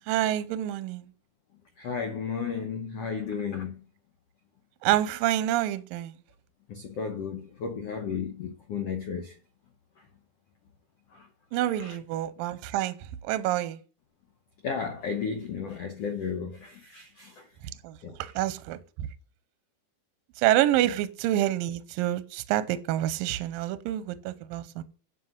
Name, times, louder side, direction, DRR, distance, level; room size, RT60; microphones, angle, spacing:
voice 1, 0.1-1.1 4.8-6.2 11.5-13.8 17.6-19.1 20.4-24.8, right 13 dB, 80° right, 2.3 m, -28 dB
voice 2, 1.8-3.8 6.7-9.3 11.1-11.2 11.8-12.0 14.6-17.4 18.0-18.2, left 6 dB, 90° left, 1.3 m, -33 dB
10.5 x 5.6 x 7.9 m
omnidirectional pair, 4.5 m